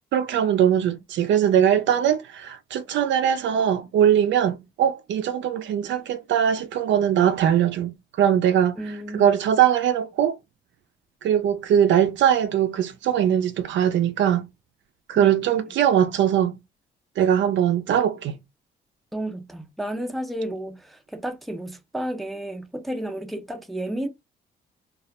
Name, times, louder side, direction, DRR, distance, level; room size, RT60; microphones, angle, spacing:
voice 1, 0.1-8.8 9.1-10.4 11.2-14.5 15.1-16.6 17.2-18.4, right 9 dB, 70° right, 0.4 m, -21 dB
voice 2, 8.8-9.3 15.2-15.7 19.1-24.1, right 1 dB, ahead, 0.5 m, -32 dB
2.3 x 2.0 x 2.8 m
cardioid pair, 90°, 20 cm